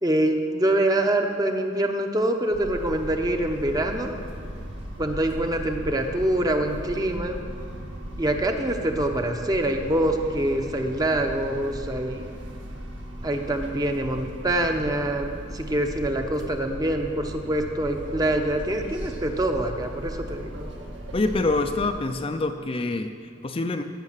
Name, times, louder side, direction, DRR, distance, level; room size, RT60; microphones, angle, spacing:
voice 1, 0.0-4.1 5.0-7.4 8.2-12.2 13.2-20.7, right 1 dB, 20° right, 4 dB, 0.9 m, -25 dB
sound 1, 2.5-21.9, equal, 85° right, 1.8 m, -37 dB
voice 2, 21.1-23.8, left 2 dB, 30° left, 6 dB, 0.5 m, -26 dB
16.0 x 6.8 x 7.4 m, 2.3 s
head